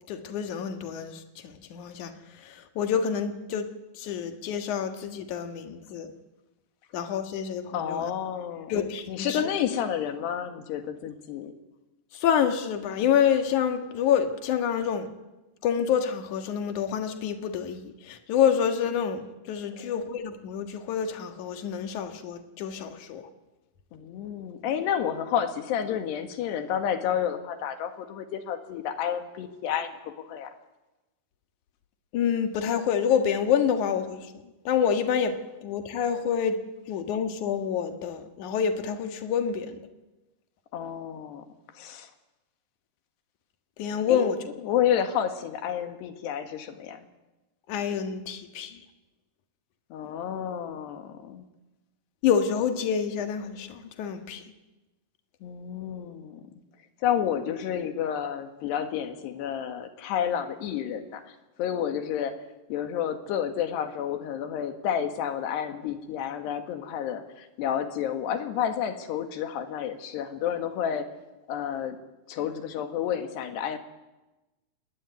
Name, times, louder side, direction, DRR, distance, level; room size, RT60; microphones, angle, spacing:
voice 1, 0.1-2.1 2.4-3.7 4.0-6.1 6.9-8.1 8.7-9.4 12.1-15.1 15.6-23.2 32.1-34.3 34.6-36.6 36.9-39.8 43.8-44.4 47.7-48.8 52.2-54.4, left 8 dB, 55° left, 7 dB, 2.7 m, -27 dB
voice 2, 7.7-8.7 9.1-11.5 19.7-19.9 23.9-30.5 40.7-41.5 41.8-42.1 44.1-44.3 44.6-47.1 49.9-51.4 55.4-56.4 57.0-62.4 62.7-71.1 71.5-72.0 72.3-73.8, left 9 dB, 85° left, 8 dB, 3.9 m, -30 dB
26.0 x 20.5 x 9.5 m, 1.1 s
omnidirectional pair, 4.7 m